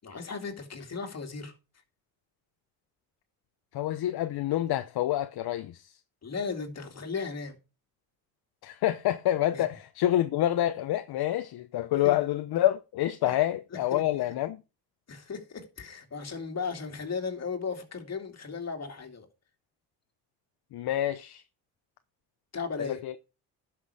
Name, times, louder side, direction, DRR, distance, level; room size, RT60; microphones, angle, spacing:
voice 1, 0.0-1.5 6.2-7.6 9.5-9.6 12.0-12.2 13.2-13.4 13.7-14.0 15.1-19.3 22.5-23.0, left 5 dB, 35° left, 2.6 m, -36 dB
voice 2, 3.7-5.9 8.6-14.6 20.7-21.4 22.8-23.1, left 13 dB, 60° left, 0.9 m, -27 dB
11.0 x 6.3 x 4.8 m
cardioid pair, 85°, 42 cm